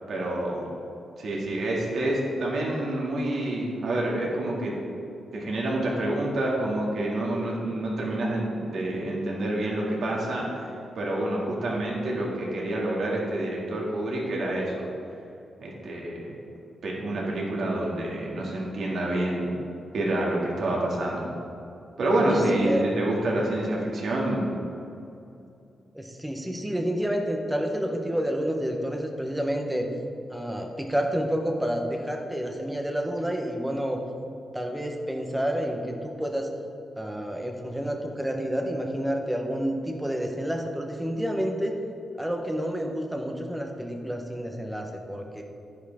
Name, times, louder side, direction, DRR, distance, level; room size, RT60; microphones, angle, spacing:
voice 1, 0.1-0.7 1.2-4.7 5.3-10.7 11.0-14.9 15.6-16.4 16.8-19.5 19.9-21.3 22.0-24.5, right 1 dB, 60° right, -3 dB, 2.1 m, -27 dB
voice 2, 22.3-22.9 25.9-29.9 30.3-34.0 34.5-36.5 37.0-41.8 42.2-45.4, equal, 5° right, 2 dB, 0.8 m, -29 dB
9.9 x 9.6 x 3.5 m, 2.6 s
wide cardioid pair, 165°, 0 cm